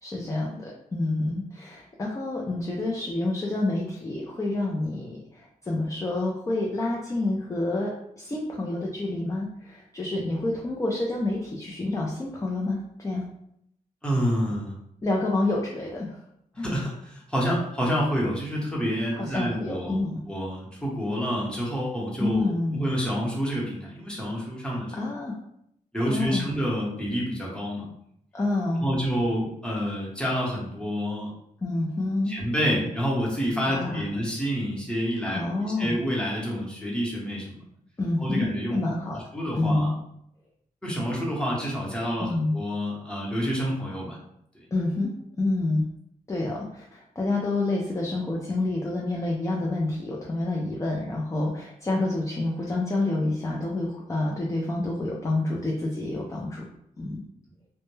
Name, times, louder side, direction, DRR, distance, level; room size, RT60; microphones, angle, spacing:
voice 1, 0.0-13.2 15.0-16.2 16.6-16.7 19.1-20.1 22.2-22.8 24.9-25.4 26.0-26.4 28.3-28.9 31.6-32.3 33.7-34.0 35.3-36.0 38.0-39.2 39.5-39.9 42.2-42.6 44.7-45.8 46.3-56.6 57.0-57.2, left 2 dB, 20° left, -2 dB, 0.4 m, -28 dB
voice 2, 14.0-14.8 16.5-20.0 20.3-25.0 25.9-27.8 28.8-31.3 32.3-37.6 38.2-38.8 39.3-39.9 40.8-44.2, equal, 5° left, -4 dB, 0.9 m, -28 dB
2.2 x 2.1 x 3.0 m, 0.73 s
cardioid pair, 85°, 15 cm